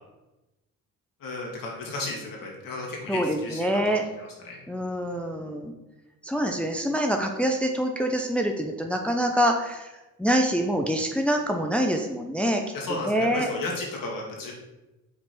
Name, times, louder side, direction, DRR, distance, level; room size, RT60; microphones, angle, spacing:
voice 1, 1.2-4.6 12.7-14.5, left 2 dB, 65° left, -2 dB, 2.0 m, -34 dB
voice 2, 3.1-4.0 4.7-5.7 6.2-9.9 10.2-12.6 13.0-13.5, equal, 5° left, 3 dB, 0.7 m, -25 dB
5.2 x 4.5 x 4.1 m, 1.0 s
supercardioid pair, 55°, 36 cm